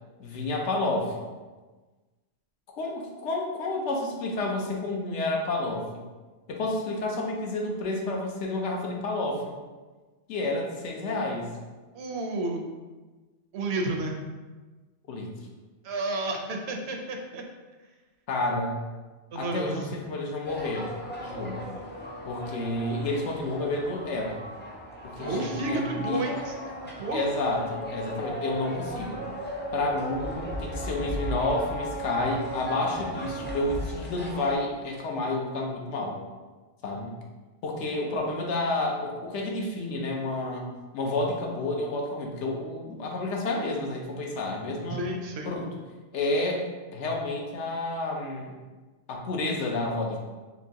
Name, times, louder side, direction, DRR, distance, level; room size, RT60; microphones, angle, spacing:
voice 1, 0.2-1.2 2.8-6.0 6.5-9.6 10.3-11.5 15.1-15.3 18.3-18.8 19.3-20.9 21.2-21.6 22.2-24.4 25.0-26.2 27.1-29.3 29.7-36.2 36.8-37.1 37.6-40.7 40.9-45.1 45.5-45.7 46.1-46.7 46.9-48.5 49.1-50.2, left 2 dB, 80° left, 0 dB, 1.0 m, -30 dB
voice 2, 11.9-12.6 13.5-14.2 15.8-17.4 19.3-19.9 25.2-26.5 27.0-27.2 44.9-45.5, right 2 dB, 70° right, 2 dB, 0.8 m, -31 dB
sound 1, 20.4-34.5, equal, 15° left, 0.3 m, -36 dB
4.3 x 3.0 x 2.7 m, 1.3 s
omnidirectional pair, 1.2 m